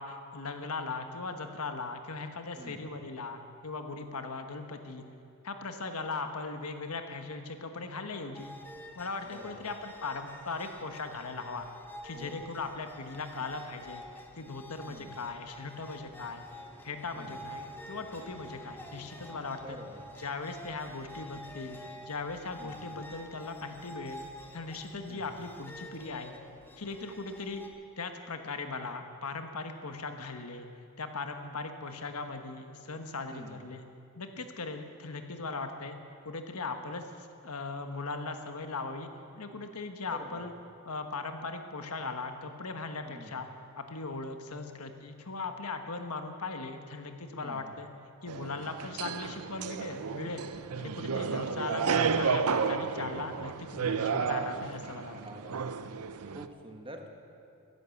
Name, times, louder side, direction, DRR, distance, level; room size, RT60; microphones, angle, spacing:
voice 1, 0.0-5.0 5.4-8.5 8.9-11.7 12.0-14.0 14.4-16.4 16.8-19.8 20.2-21.8 22.1-24.3 24.5-26.3 26.8-27.6 28.0-30.7 31.0-33.8 34.1-36.0 36.2-39.1 39.4-40.5 40.8-43.5 43.8-47.9 48.2-50.5 50.8-55.2, left 3 dB, 85° left, 6 dB, 1.3 m, -39 dB
voice 2, 2.5-2.9 9.2-9.7 12.1-12.5 13.4-13.5 14.9-15.2 17.1-17.5 19.6-20.1 22.6-23.0 25.1-25.4 33.3-33.7 40.1-40.5 43.0-43.5 47.4-47.8 55.1-55.8 56.3-57.1, right 1 dB, 25° right, 3 dB, 1.4 m, -48 dB
sound 1, 8.3-27.7, left 1 dB, 10° left, 1.2 m, -48 dB
sound 2, 48.3-56.5, right 6 dB, 80° right, 0.6 m, -32 dB
15.5 x 11.0 x 7.2 m, 2.5 s
head